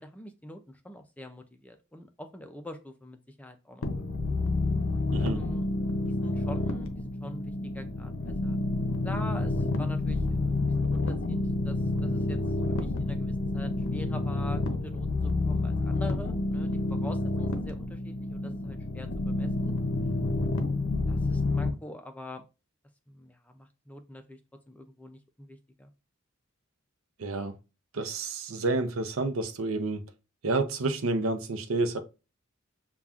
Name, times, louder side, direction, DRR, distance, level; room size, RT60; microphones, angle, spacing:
voice 1, 0.0-4.1 5.2-5.7 6.1-8.6 9.0-12.4 12.7-19.7 21.1-22.4 23.1-24.4 24.7-25.9, left 1 dB, 5° left, 0.4 m, -44 dB
sound 1, 3.8-21.7, left 2 dB, 65° left, 0.6 m, -29 dB
voice 2, 5.1-5.4 27.2-27.5 27.9-30.1 30.4-32.0, right 3 dB, 75° right, 0.6 m, -29 dB
6.9 x 2.3 x 2.4 m
head